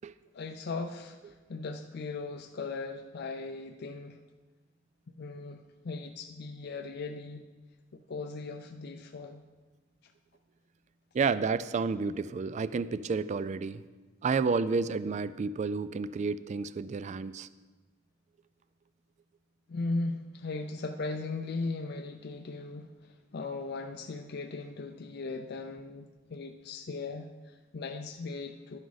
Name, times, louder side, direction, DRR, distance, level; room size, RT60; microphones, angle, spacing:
voice 1, 0.3-4.2 5.1-7.5 7.9-9.4 19.7-28.8, left 3 dB, 55° left, 5 dB, 0.5 m, -38 dB
voice 2, 11.1-13.8 14.2-17.5, right 4 dB, 40° right, 16 dB, 0.3 m, -30 dB
11.5 x 9.7 x 4.0 m, 1.3 s
head